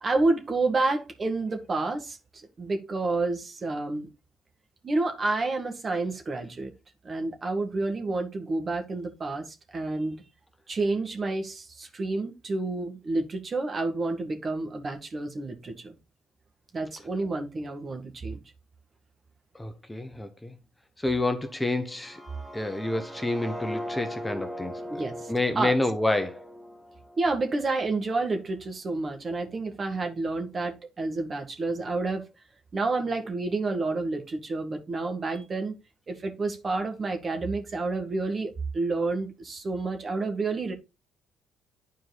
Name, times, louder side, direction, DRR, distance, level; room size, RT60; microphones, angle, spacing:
voice 1, 0.0-2.2 2.6-4.1 4.8-6.7 7.0-10.2 10.7-16.0 16.7-18.4 24.9-25.8 27.2-32.3 32.7-35.7 36.1-40.7, right 3 dB, 40° right, 1.9 m, -29 dB
voice 2, 19.5-20.5 21.0-22.2 22.5-26.4, left 2 dB, 10° left, 1.2 m, -29 dB
sound 1, 21.9-27.9, equal, 15° right, 1.8 m, -39 dB
9.5 x 4.7 x 4.1 m
supercardioid pair, 75°, 0 cm